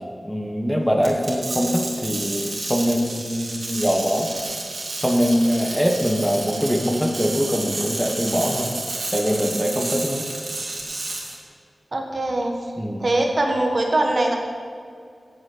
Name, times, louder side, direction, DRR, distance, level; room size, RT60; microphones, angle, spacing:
voice 1, 0.2-4.3 5.0-8.7 9.1-10.2 12.8-13.1, equal, 5° left, 1 dB, 1.1 m, -23 dB
sound 1, 1.0-11.3, right 2 dB, 75° right, 2.7 m, -31 dB
voice 2, 11.9-12.5 13.0-14.4, right 2 dB, 45° right, 2 dB, 1.5 m, -21 dB
8.8 x 7.6 x 8.5 m, 2.3 s
wide cardioid pair, 100°, 0 cm